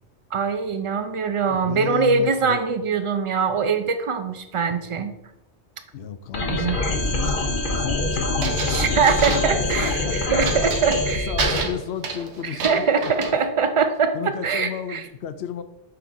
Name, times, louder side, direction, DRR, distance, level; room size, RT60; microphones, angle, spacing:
voice 1, 0.3-5.1 6.5-6.8 8.7-11.7 12.5-15.0, right 5 dB, 55° right, 8 dB, 0.3 m, -23 dB
voice 2, 1.5-2.6 5.9-7.4 7.7-10.2 11.3-12.8 14.1-15.6, left 8 dB, 70° left, 10 dB, 0.8 m, -32 dB
sound 1, 6.3-11.6, left 2 dB, 50° left, 1.1 m, -25 dB
sound 2, 7.2-7.6 8.4-10.0 10.4-11.1 11.4-13.3, right 5 dB, 75° right, 1.1 m, -29 dB
5.7 x 3.8 x 4.6 m, 0.87 s
omnidirectional pair, 1.2 m